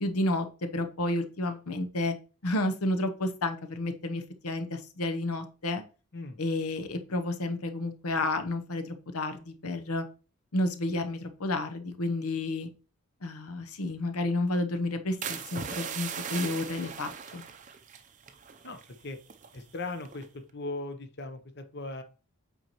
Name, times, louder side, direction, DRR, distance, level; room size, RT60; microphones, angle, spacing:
voice 1, 0.0-2.1 2.4-5.8 6.4-10.1 10.5-12.7 13.2-17.4, left 2 dB, 85° left, 8 dB, 0.9 m, -31 dB
sound 1, 15.2-19.0 19.2-19.6 20.1-20.4, right 7 dB, 35° right, 0.5 m, -39 dB
voice 2, 18.6-19.2 19.5-20.2 20.5-22.0, left 2 dB, 50° left, 8 dB, 0.8 m, -38 dB
8.0 x 4.5 x 3.0 m, 0.34 s
head